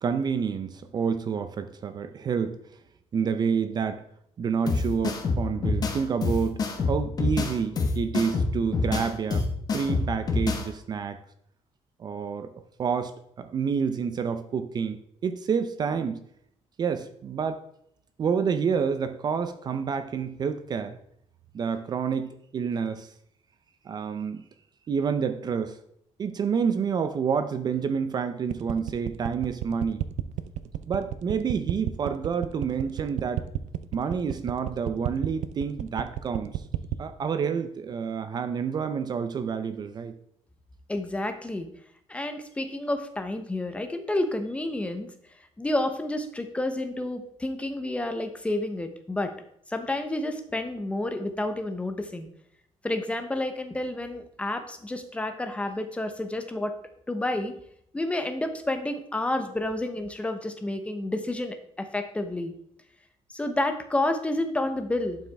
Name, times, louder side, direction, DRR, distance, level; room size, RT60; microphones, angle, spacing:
voice 1, 0.0-2.6 3.1-4.0 4.4-6.6 6.9-9.4 9.7-11.2 12.0-12.5 12.8-16.2 16.8-17.6 18.2-21.0 21.5-23.1 23.9-24.4 24.9-25.8 26.2-30.0 30.9-33.4 33.9-36.5 37.0-40.1, right 6 dB, 35° right, 10 dB, 0.6 m, -28 dB
sound 1, 4.7-10.7, left 3 dB, 35° left, 1.2 m, -27 dB
sound 2, 28.5-37.0, right 14 dB, 85° right, 0.5 m, -31 dB
voice 2, 40.9-41.7 42.1-45.1 45.6-49.3 49.7-52.3 52.8-56.7 57.1-57.5 57.9-62.5 63.3-65.2, left 1 dB, 10° left, 8 dB, 0.8 m, -30 dB
11.5 x 5.8 x 3.5 m, 0.72 s
cardioid pair, 155°, 12 cm